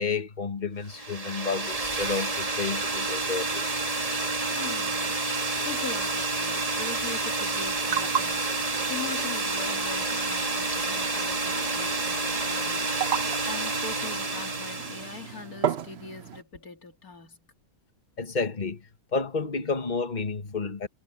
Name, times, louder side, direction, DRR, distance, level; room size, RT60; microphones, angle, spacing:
voice 1, 0.0-3.7 18.2-20.9, left 4 dB, 30° left, 1.6 m, -31 dB
sound 1, 0.9-15.4, right 3 dB, 25° right, 1.7 m, -29 dB
voice 2, 4.5-17.4, left 4 dB, 85° left, 3.0 m, -42 dB
sound 2, 7.5-16.4, right 9 dB, 55° right, 0.9 m, -35 dB
omnidirectional pair, 1.5 m